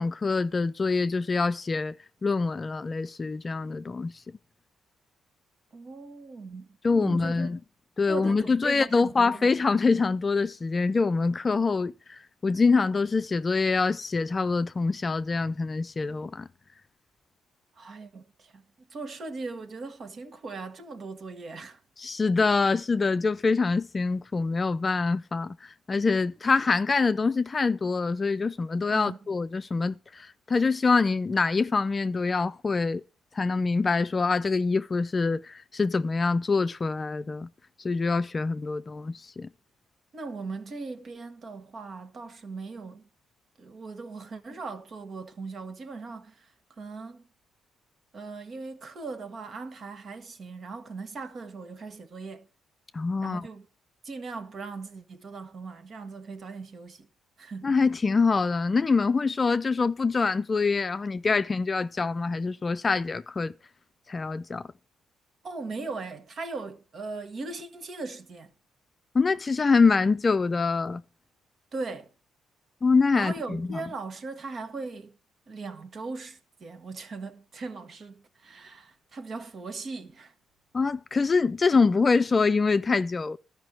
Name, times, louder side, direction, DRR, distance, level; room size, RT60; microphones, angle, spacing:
voice 1, 0.0-1.9 2.2-4.1 6.8-7.6 8.0-11.9 12.4-16.5 22.0-33.0 33.4-37.5 37.8-39.5 52.9-53.5 57.6-63.5 64.1-64.6 69.1-71.0 72.8-73.8 80.7-83.4, left 4 dB, 30° left, 0.5 m, -25 dB
voice 2, 5.7-7.6 8.1-9.5 17.7-18.6 18.9-21.8 28.9-29.2 40.1-43.0 43.6-46.5 46.8-47.2 48.1-52.5 53.2-53.7 54.0-57.1 57.4-57.7 65.4-68.5 71.7-72.1 73.1-75.1 75.5-80.3, right 3 dB, 50° right, 1.6 m, -39 dB
12.5 x 5.3 x 7.5 m
cardioid pair, 90°, 0 cm